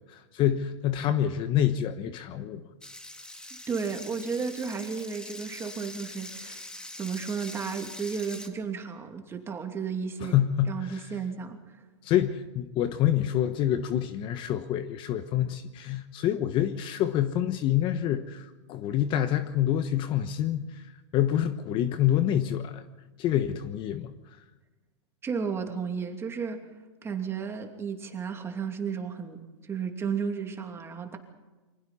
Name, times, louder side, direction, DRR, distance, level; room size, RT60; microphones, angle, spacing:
voice 1, 0.0-2.6 10.2-11.0 12.0-20.8 21.1-22.8 23.2-24.1, left 11 dB, 30° left, 10 dB, 1.1 m, -27 dB
sound 1, 2.8-8.5, left 1 dB, 5° left, 2.0 m, -43 dB
voice 2, 3.7-6.7 7.0-10.4 10.7-11.6 25.2-26.6 27.0-29.4 29.6-31.2, right 6 dB, 15° right, 4 dB, 2.7 m, -33 dB
28.0 x 24.5 x 4.3 m, 1.2 s
hypercardioid pair, 140°, 16 cm